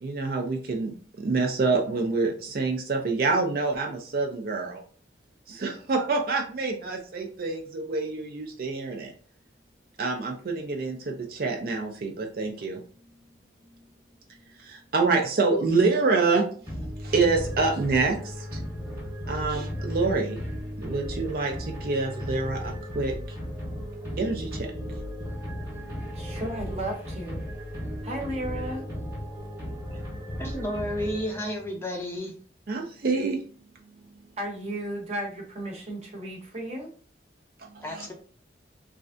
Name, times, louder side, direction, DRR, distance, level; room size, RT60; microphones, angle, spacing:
voice 1, 0.0-4.8 5.5-9.1 10.0-12.8 14.5-18.6 19.3-23.1 24.2-24.7 25.8-26.0 32.7-33.4 37.7-38.1, right 3 dB, 55° right, 2 dB, 0.4 m, -27 dB
sound 1, 16.6-31.7, equal, 15° right, 0.9 m, -35 dB
voice 2, 26.1-27.4 28.0-28.9 34.4-36.9, right 1 dB, 35° right, 0 dB, 0.8 m, -34 dB
voice 3, 30.4-32.3 37.8-38.1, equal, 15° left, 1 dB, 0.5 m, -32 dB
3.1 x 2.4 x 2.4 m, 0.43 s
head